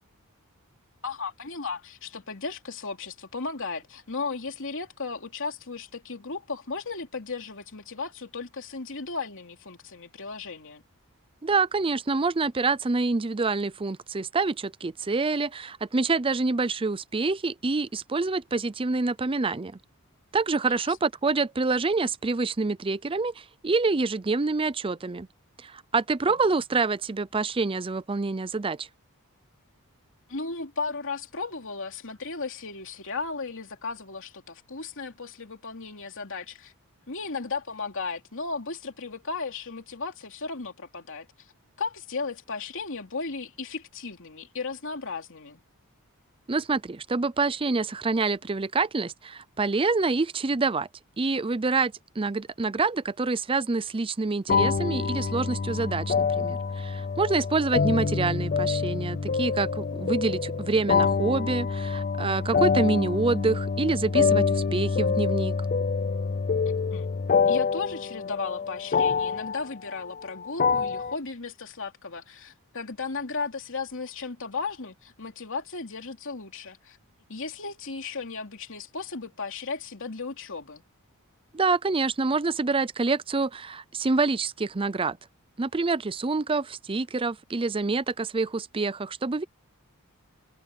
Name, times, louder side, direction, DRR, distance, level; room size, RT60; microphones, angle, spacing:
voice 1, 1.0-10.8 20.8-20.9 26.3-26.4 30.3-36.7 37.1-41.3 41.8-45.6 66.9-67.1 67.5-77.0 77.3-80.8, left 4 dB, 60° left, 2.9 m, -35 dB
voice 2, 11.4-19.8 20.3-25.3 25.6-28.9 46.5-50.9 51.2-65.5 81.5-85.2 85.6-89.4, right 3 dB, 25° right, 0.5 m, -27 dB
sound 1, 54.5-71.1, left 5 dB, 40° left, 0.5 m, -26 dB
head